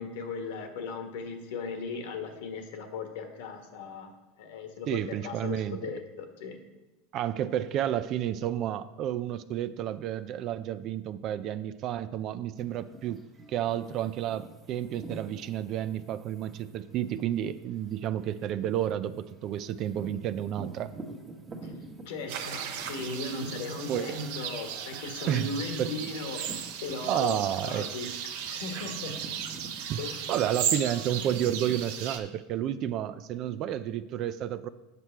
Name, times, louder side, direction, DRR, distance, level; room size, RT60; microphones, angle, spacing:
voice 1, 0.0-4.1 4.4-6.6 21.6-21.7 22.0-28.1 28.5-29.1 30.0-30.3, left 4 dB, 75° left, 5 dB, 1.4 m, -37 dB
voice 2, 4.9-6.0 7.1-20.9 23.9-24.2 25.3-25.5 25.8-26.1 27.1-27.9 29.9-30.0 30.3-34.7, right 11 dB, 50° right, 13 dB, 0.4 m, -31 dB
sound 1, 12.6-27.7 28.1-31.9, right 2 dB, 20° right, 1.4 m, -48 dB
sound 2, 22.3-32.2, right 8 dB, 70° right, 0.8 m, -36 dB
8.2 x 5.9 x 4.5 m, 1.0 s
supercardioid pair, 110°, 0 cm